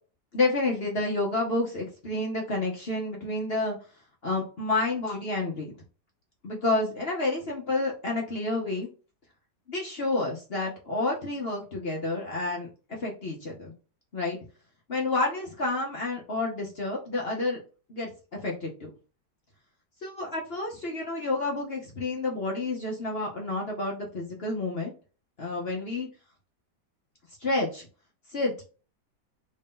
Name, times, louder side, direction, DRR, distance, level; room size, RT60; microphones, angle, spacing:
voice 1, 0.3-3.8 4.2-5.7 6.4-8.9 9.7-13.7 14.1-14.4 14.9-17.6 17.9-18.9 20.0-24.9 25.4-26.1 27.4-27.9 28.3-28.5, left 2 dB, 45° left, -2 dB, 0.9 m, -29 dB
3.2 x 2.7 x 3.6 m, 0.36 s
omnidirectional pair, 1.9 m